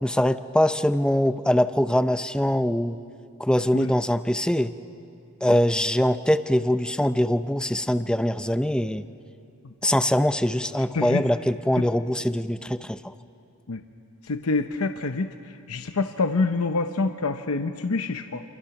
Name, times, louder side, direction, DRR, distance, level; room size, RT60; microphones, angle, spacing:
voice 1, 0.0-3.0 3.4-4.7 5.4-9.1 9.8-13.1, left 1 dB, 5° left, 11 dB, 0.5 m, -23 dB
voice 2, 14.3-15.3 15.7-18.4, left 3 dB, 75° left, 7 dB, 0.8 m, -26 dB
28.0 x 27.5 x 6.0 m, 2.4 s
head